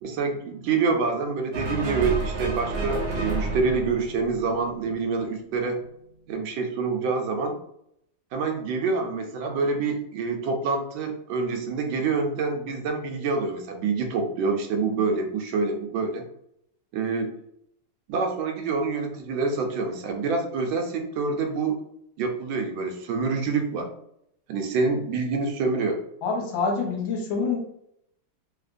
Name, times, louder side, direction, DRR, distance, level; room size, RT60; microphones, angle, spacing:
voice 1, 0.0-5.8 6.3-7.6 8.3-16.2 16.9-17.3 18.1-21.8 22.2-23.9 24.5-26.0, right 4 dB, 80° right, 4 dB, 1.3 m, -26 dB
sound 1, 1.5-5.0, right 2 dB, 65° right, 0.8 m, -30 dB
voice 2, 26.2-27.6, left 4 dB, 80° left, 1 dB, 1.6 m, -26 dB
3.3 x 2.8 x 2.5 m, 0.73 s
omnidirectional pair, 2.1 m